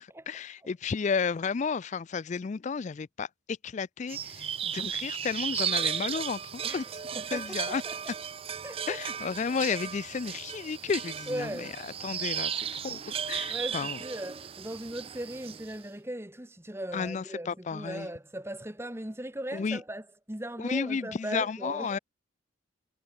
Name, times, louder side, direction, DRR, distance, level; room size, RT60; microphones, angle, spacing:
voice 1, 0.0-6.8 7.3-7.8 8.9-11.7 12.0-14.0 16.9-18.1 19.5-19.8 20.6-22.0, left 5 dB, 35° left, 0.3 m, -32 dB
sound 1, 4.1-15.8, right 8 dB, 30° right, 0.5 m, -35 dB
voice 2, 6.6-8.1 8.6-9.0 11.3-11.8 13.5-22.0, right 1 dB, 15° right, 2.1 m, -38 dB
head